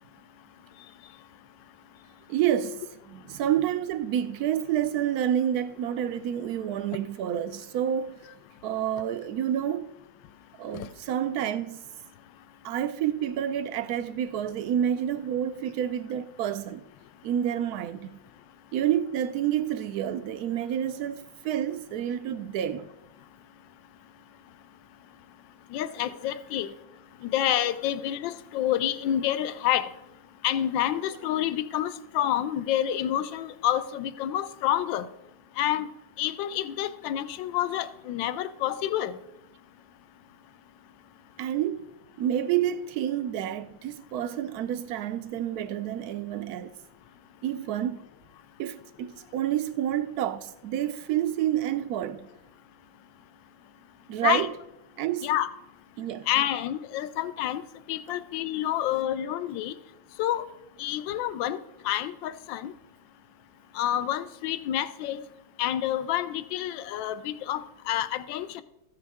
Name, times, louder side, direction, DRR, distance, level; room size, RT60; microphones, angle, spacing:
voice 1, 2.3-8.2 8.6-9.9 10.6-11.9 12.6-16.8 17.2-18.2 18.7-22.9 41.4-41.9 42.2-46.8 47.4-48.1 48.6-52.3 54.1-54.5 55.0-55.3 56.0-56.3, right 10 dB, 75° right, 0.9 m, -29 dB
voice 2, 25.7-26.7 27.2-29.9 30.4-35.1 35.6-35.9 36.2-39.2 54.2-54.5 55.2-55.5 56.3-57.6 57.9-59.7 60.2-60.4 60.8-61.6 61.8-62.7 63.7-65.2 65.6-68.6, left 12 dB, 80° left, 1.3 m, -28 dB
14.0 x 9.3 x 3.5 m
omnidirectional pair, 2.1 m